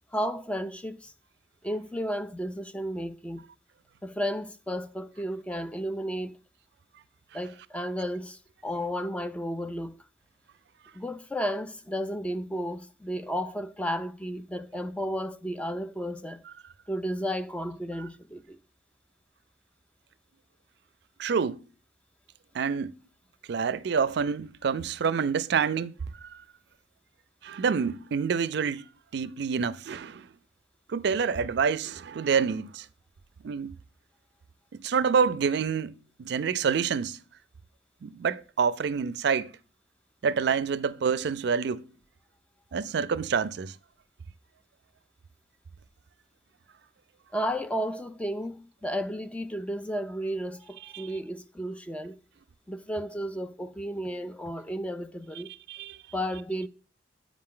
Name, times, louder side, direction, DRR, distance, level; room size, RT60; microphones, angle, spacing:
voice 1, 0.1-1.1 1.6-3.4 4.0-6.4 7.3-9.9 10.9-16.4 16.9-18.6 47.3-52.2 52.7-55.5 56.1-56.7, equal, 5° left, 0.4 m, -33 dB
voice 2, 21.2-21.6 22.5-23.0 23.5-25.9 26.2-26.4 27.4-28.8 29.1-30.3 30.9-32.9 33.4-33.7 34.7-35.9 36.2-37.2 38.0-39.5 40.2-41.8 42.7-43.7 50.9-51.1 55.7-56.0, right 6 dB, 70° right, 0.4 m, -27 dB
8.6 x 4.9 x 3.7 m
head